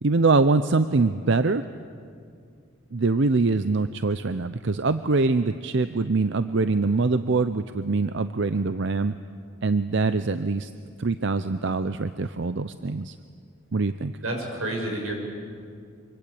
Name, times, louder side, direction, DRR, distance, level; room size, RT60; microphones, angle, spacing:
voice 1, 0.0-1.6 2.9-9.1 9.6-10.7 11.0-13.1 13.7-14.1, right 3 dB, 60° right, 11 dB, 0.6 m, -23 dB
voice 2, 14.2-15.1, right 1 dB, 85° right, 2 dB, 6.6 m, -29 dB
25.5 x 25.0 x 8.7 m, 2.2 s
head